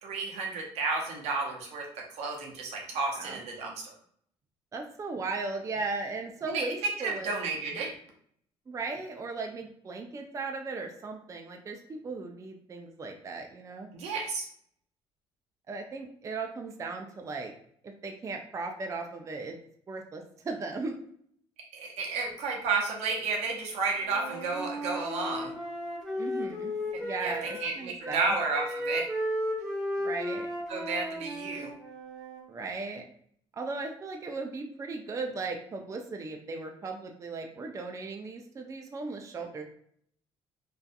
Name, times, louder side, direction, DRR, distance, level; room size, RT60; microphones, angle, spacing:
voice 1, 0.0-3.9 6.5-6.6 7.0-7.9 13.9-14.5 21.7-25.5 27.2-27.3 27.6-29.1 30.7-31.7, right 4 dB, 75° right, 0 dB, 0.7 m, -32 dB
voice 2, 4.7-7.3 8.7-13.9 15.7-17.5 17.8-19.6 19.9-20.9 26.2-26.7 27.0-28.4 30.0-30.5 32.5-33.0 33.5-39.6, right 3 dB, 30° right, 3 dB, 0.4 m, -37 dB
Wind instrument woodwind instrument, 24.0-27.7 28.0-32.4, equal, ahead, 1.0 m, -35 dB
2.6 x 2.3 x 2.2 m, 0.63 s
supercardioid pair, 70°, 11 cm